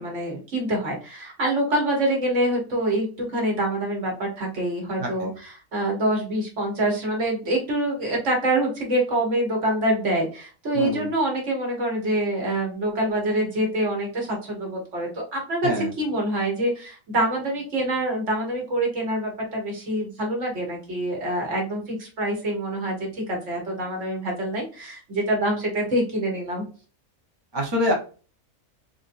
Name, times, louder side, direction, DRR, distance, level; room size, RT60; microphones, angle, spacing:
voice 1, 0.0-26.6, right 1 dB, 55° right, -1 dB, 1.5 m, -26 dB
voice 2, 5.0-5.3 10.7-11.1 15.6-15.9 27.5-27.9, left 1 dB, 25° right, 0 dB, 0.6 m, -25 dB
3.8 x 2.6 x 2.6 m, 0.36 s
omnidirectional pair, 1.5 m